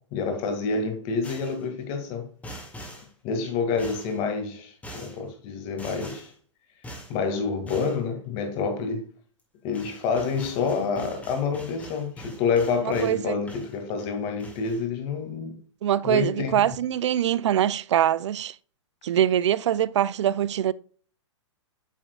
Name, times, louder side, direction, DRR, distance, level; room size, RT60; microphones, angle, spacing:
voice 1, 0.1-2.3 3.2-6.3 7.1-9.1 9.6-15.6 16.0-16.7, left 5 dB, 40° left, 2.2 m, -28 dB
sound 1, 1.2-1.7 2.4-3.1 3.8-4.2 4.8-5.2 5.8-6.3 6.8-7.1 7.7-8.0 9.4-9.5 9.7-13.2 13.5-14.1 14.4-14.8, equal, 10° left, 2.2 m, -43 dB
voice 2, 13.0-13.4 15.8-18.5 19.0-20.7, right 10 dB, 65° right, 0.4 m, -23 dB
9.0 x 5.9 x 2.3 m
hypercardioid pair, 125°, 16 cm